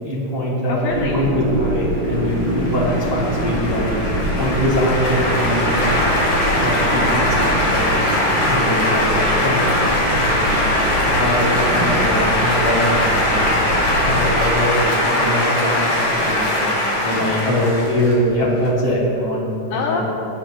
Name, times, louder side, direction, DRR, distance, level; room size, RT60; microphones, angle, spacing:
voice 1, 0.0-4.0 4.4-6.0 6.6-8.0 8.4-9.1 9.4-9.9 10.2-10.6 11.0-13.4 14.0-16.4 17.0-20.0, equal, 10° right, -8 dB, 1.9 m, -22 dB
voice 2, 0.7-1.3 5.9-6.3 16.2-17.5 19.7-20.0, left 6 dB, 80° left, 2 dB, 2.1 m, -29 dB
sound 1, 0.9-14.4, right 1 dB, 80° right, 3.8 m, -25 dB
sound 2, 2.0-18.7, left 1 dB, 60° left, 4.3 m, -20 dB
20.0 x 10.0 x 2.9 m, 2.8 s
omnidirectional pair, 4.7 m